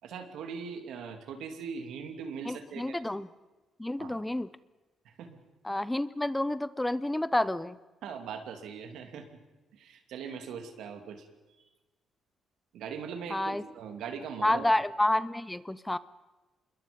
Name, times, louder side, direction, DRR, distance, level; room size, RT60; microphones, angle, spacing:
voice 1, 0.0-3.0 4.0-4.2 5.0-5.4 8.0-9.3 9.7-11.3 12.7-14.6, right 6 dB, 80° right, 6 dB, 2.7 m, -40 dB
voice 2, 2.4-3.3 3.8-4.5 5.6-7.8 13.3-13.6 14.4-16.0, left 1 dB, 10° left, 17 dB, 0.7 m, -29 dB
27.5 x 21.5 x 5.4 m, 1.2 s
cardioid pair, 90°, 0 cm